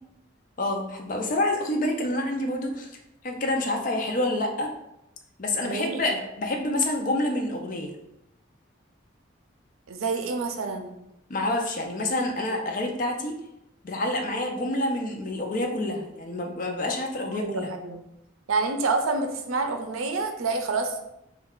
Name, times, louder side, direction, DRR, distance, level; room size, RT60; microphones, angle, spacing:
voice 1, 0.6-2.9 3.2-4.7 5.4-7.9 11.3-13.4 13.8-17.7, left 1 dB, 40° left, 3 dB, 0.5 m, -27 dB
voice 2, 5.6-6.2 9.9-10.9 17.3-18.0 18.5-21.0, right 3 dB, 90° right, 6 dB, 0.5 m, -28 dB
3.1 x 2.3 x 3.6 m, 0.85 s
head